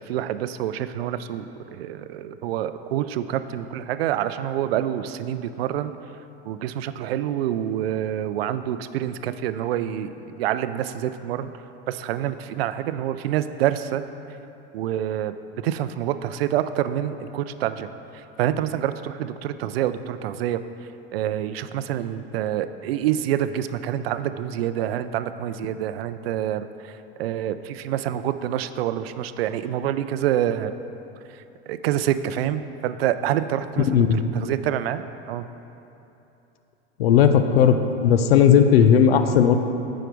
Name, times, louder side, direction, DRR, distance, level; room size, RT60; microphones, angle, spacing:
voice 1, 0.0-5.9 6.5-10.1 10.4-11.5 11.9-14.0 14.7-15.3 15.6-17.9 18.1-20.6 21.1-26.9 27.2-30.7 31.7-35.0 35.3-35.5, right 11 dB, 80° right, 12 dB, 0.5 m, -27 dB
voice 2, 33.9-34.2 37.0-37.8 38.0-39.6, left 8 dB, 85° left, 8 dB, 0.6 m, -16 dB
8.9 x 4.9 x 4.6 m, 2.9 s
hypercardioid pair, 95°, 30 cm